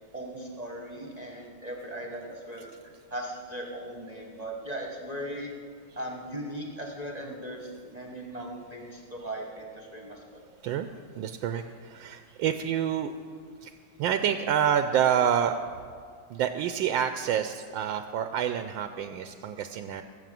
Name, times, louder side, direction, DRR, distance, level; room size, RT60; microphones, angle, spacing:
voice 1, 0.1-2.7 3.1-5.5 6.0-10.5, right 1 dB, 25° right, 0 dB, 1.2 m, -38 dB
voice 2, 11.1-13.1 13.6-13.7 14.0-15.5 16.3-20.0, right 9 dB, 80° right, 8 dB, 1.3 m, -27 dB
19.0 x 8.1 x 7.6 m, 2.1 s
omnidirectional pair, 2.1 m